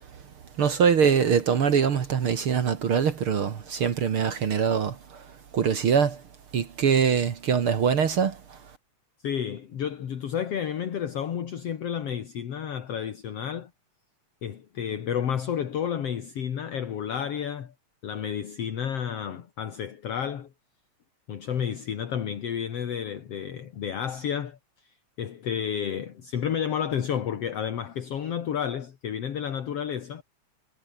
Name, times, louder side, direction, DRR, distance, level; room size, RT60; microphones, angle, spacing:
voice 1, 0.6-5.3 5.5-6.2 6.5-8.6, right 7 dB, 50° right, 2.3 m, -23 dB
voice 2, 9.2-13.7 14.4-17.7 18.0-20.5 21.3-24.6 25.2-30.2, left 8 dB, 60° left, 2.7 m, -31 dB
omnidirectional pair, 3.3 m